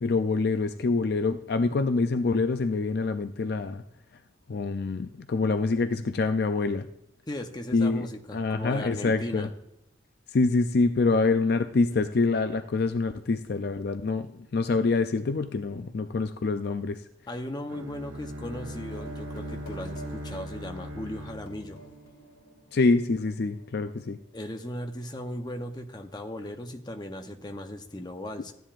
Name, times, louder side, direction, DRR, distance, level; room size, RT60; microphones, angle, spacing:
voice 1, 0.0-3.8 4.5-6.9 7.7-8.1 8.3-9.5 10.3-17.0 22.7-24.2, left 3 dB, 50° left, 8 dB, 0.4 m, -26 dB
voice 2, 7.3-9.5 17.3-21.8 24.3-28.5, left 1 dB, 20° left, 5 dB, 0.8 m, -37 dB
Bowed string instrument, 17.7-22.6, equal, 85° right, 1.0 m, -40 dB
sound 1, 18.9-24.3, right 2 dB, 80° left, 2.1 m, -48 dB
14.0 x 10.0 x 2.5 m, 0.82 s
head